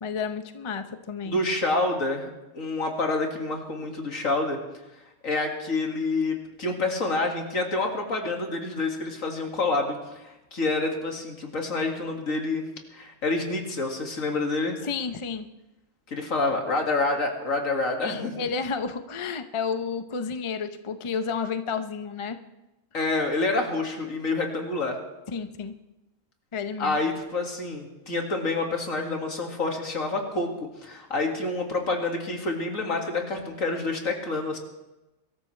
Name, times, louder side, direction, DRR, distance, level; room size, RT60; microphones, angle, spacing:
voice 1, 0.0-1.4 14.8-15.5 18.0-22.4 25.3-25.7 26.5-27.0, left 5 dB, 35° left, 8 dB, 0.5 m, -31 dB
voice 2, 1.2-4.6 5.2-14.8 16.1-18.4 22.9-25.0 26.8-30.5 30.8-34.6, left 3 dB, 70° left, 2 dB, 2.4 m, -28 dB
23.0 x 13.5 x 3.3 m, 1.0 s
omnidirectional pair, 1.5 m